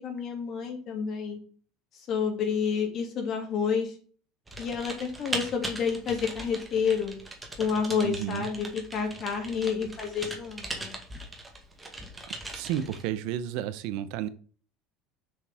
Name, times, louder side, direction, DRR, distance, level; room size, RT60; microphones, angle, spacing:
voice 1, 0.0-1.4 2.1-4.0 4.6-7.1 7.6-10.9, left 6 dB, 45° left, 2.7 m, -29 dB
Typing, 4.5-13.1, right 2 dB, 10° right, 1.8 m, -39 dB
voice 2, 8.0-8.5 12.5-14.3, right 11 dB, 70° right, 0.8 m, -32 dB
7.2 x 6.4 x 3.7 m
cardioid pair, 135°, 0 cm